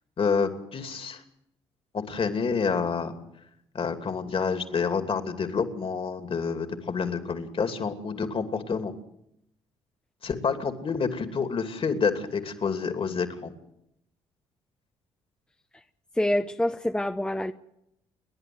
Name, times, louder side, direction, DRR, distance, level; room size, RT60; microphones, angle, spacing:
voice 1, 0.2-1.2 1.9-3.1 3.7-8.9 10.2-13.5, left 5 dB, 45° left, 7 dB, 2.7 m, -28 dB
voice 2, 16.2-17.5, left 1 dB, 5° left, 8 dB, 0.9 m, -26 dB
30.0 x 11.0 x 7.9 m, 0.81 s
hypercardioid pair, 55°, 13 cm